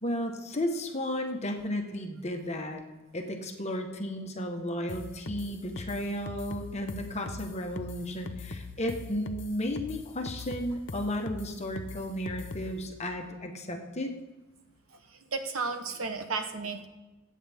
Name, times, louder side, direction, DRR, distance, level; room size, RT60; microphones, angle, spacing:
voice 1, 0.0-2.8 3.1-14.1, left 1 dB, 30° left, 4 dB, 1.2 m, -34 dB
sound 1, 4.9-12.8, left 3 dB, 60° left, 0.7 m, -41 dB
voice 2, 15.1-16.9, right 4 dB, 80° right, 6 dB, 1.1 m, -33 dB
21.5 x 8.7 x 3.6 m, 1.1 s
head